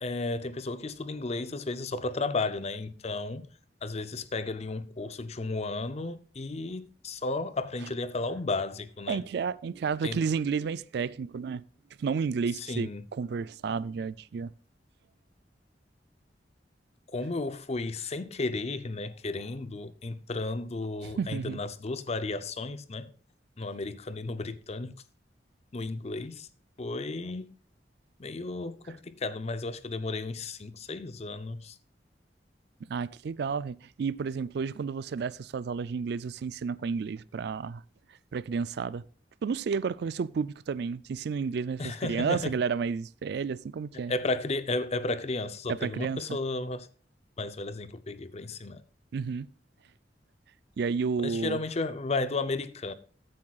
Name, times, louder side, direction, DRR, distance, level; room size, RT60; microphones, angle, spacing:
voice 1, 0.0-3.5 3.8-9.2 10.0-10.2 12.6-13.0 17.1-23.1 23.6-25.0 25.7-26.5 26.8-27.6 28.2-31.8 41.8-42.5 44.1-46.9 47.4-48.8 51.2-52.9, left 3 dB, 35° left, 0.6 m, -33 dB
voice 2, 9.1-11.6 12.0-14.5 21.0-21.6 32.9-37.8 38.3-39.0 39.4-44.1 45.7-46.4 49.1-49.5 50.8-51.6, right 5 dB, 65° right, 0.4 m, -31 dB
14.5 x 8.5 x 2.4 m
head